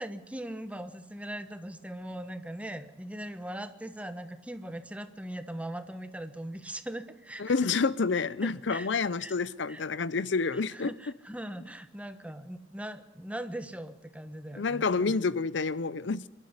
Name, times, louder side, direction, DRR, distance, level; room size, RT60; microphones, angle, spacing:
voice 1, 0.0-7.9 8.4-8.9 9.2-9.3 9.7-9.8 10.5-15.1, right 1 dB, 5° right, 1.3 m, -40 dB
voice 2, 7.4-10.9 14.6-16.2, left 4 dB, 65° left, 0.6 m, -28 dB
25.0 x 12.0 x 9.7 m
head